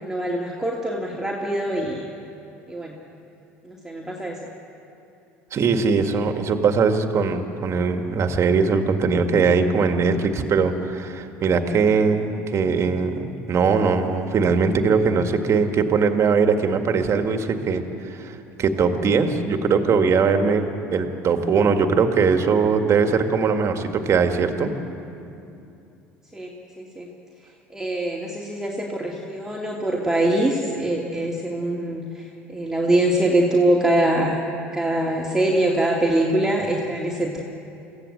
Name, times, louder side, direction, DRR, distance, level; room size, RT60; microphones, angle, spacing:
voice 1, 0.0-2.1 2.7-2.9 3.6-4.4 26.3-27.1 27.7-32.2 32.5-34.4 34.7-37.4, right 1 dB, 5° right, -3 dB, 2.6 m, -23 dB
voice 2, 5.5-24.7, right 5 dB, 40° right, 6 dB, 2.0 m, -21 dB
24.0 x 15.5 x 8.0 m, 2.7 s
hypercardioid pair, 75°, 7 cm